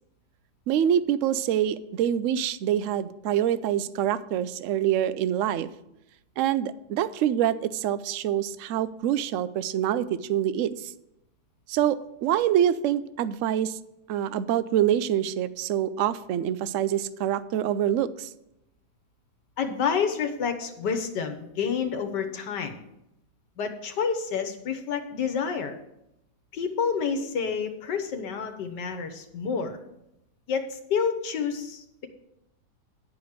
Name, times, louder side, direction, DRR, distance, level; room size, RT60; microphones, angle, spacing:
voice 1, 0.7-5.7 6.4-10.9 11.7-13.8 14.1-18.3, right 10 dB, 75° right, 15 dB, 0.7 m, -25 dB
voice 2, 19.6-22.8 23.6-25.7 26.5-29.8 30.5-32.1, left 6 dB, 80° left, 6 dB, 1.6 m, -29 dB
10.5 x 5.1 x 7.9 m, 0.85 s
omnidirectional pair, 1.9 m